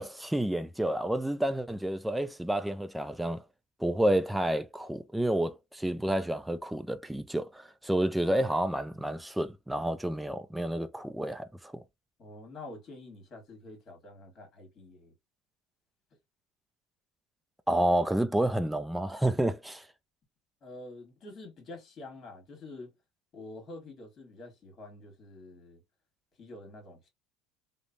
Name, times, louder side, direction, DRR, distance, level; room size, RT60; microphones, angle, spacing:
voice 1, 0.0-3.4 3.8-11.8 17.7-19.8, right 1 dB, 5° right, 0.4 m, -30 dB
voice 2, 12.2-15.1 20.6-22.9 23.3-25.8 26.4-27.1, left 2 dB, 40° left, 1.6 m, -47 dB
3.0 x 2.1 x 2.5 m
supercardioid pair, 115°, 0 cm